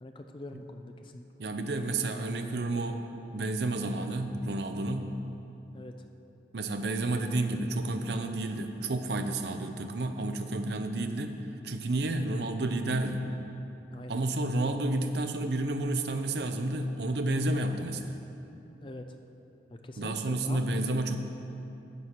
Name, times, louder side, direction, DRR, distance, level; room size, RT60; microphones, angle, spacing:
voice 1, 0.0-1.2 5.7-5.9 10.9-11.1 13.9-14.2 18.8-19.2 19.7-20.6, left 1 dB, 25° left, 5 dB, 0.4 m, -44 dB
voice 2, 1.4-3.0 3.3-5.2 6.5-11.4 11.6-13.2 14.1-18.2 20.0-21.2, right 2 dB, 65° right, 6 dB, 0.6 m, -30 dB
8.2 x 7.6 x 5.8 m, 2.9 s
head